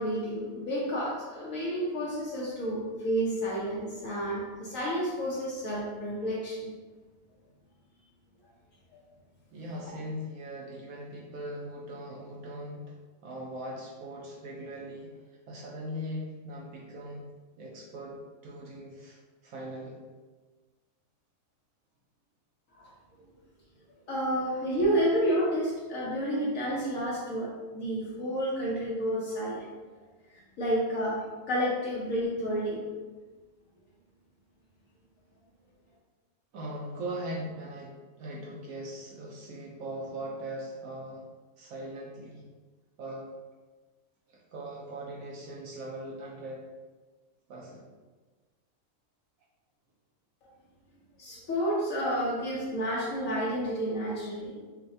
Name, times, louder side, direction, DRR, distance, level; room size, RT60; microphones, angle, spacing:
voice 1, 0.0-6.7 22.7-22.9 24.1-29.7 30.3-32.8 51.2-54.6, equal, 70° left, -6 dB, 1.1 m, -30 dB
voice 2, 9.5-13.0 13.2-17.2 17.6-18.2 18.4-20.0 36.5-41.3 41.6-42.5 43.0-43.3 44.3-46.7 47.5-47.9, right 1 dB, 75° right, -3 dB, 1.1 m, -40 dB
6.3 x 2.2 x 2.7 m, 1.3 s
omnidirectional pair, 1.5 m